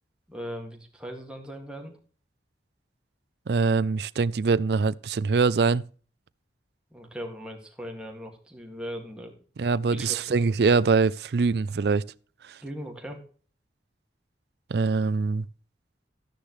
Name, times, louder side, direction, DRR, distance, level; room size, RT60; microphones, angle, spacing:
voice 1, 0.3-1.9 6.9-9.3 9.9-10.4 12.6-13.2, equal, 5° right, 2.0 m, -39 dB
voice 2, 3.5-5.8 9.6-12.0 14.7-15.5, right 4 dB, 65° right, 0.4 m, -23 dB
13.0 x 10.0 x 3.1 m
head